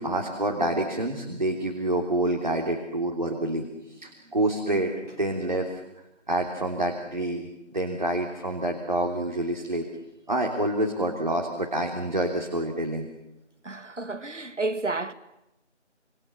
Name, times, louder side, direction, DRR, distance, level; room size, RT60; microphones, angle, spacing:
voice 1, 0.0-4.9 5.2-5.7 6.3-7.5 7.7-9.8 10.3-13.1, right 1 dB, 40° right, 3.3 m, -27 dB
voice 2, 13.6-15.1, right 2 dB, 85° right, 2.2 m, -31 dB
29.0 x 27.0 x 7.2 m
figure-of-eight pair, 180°, 36 cm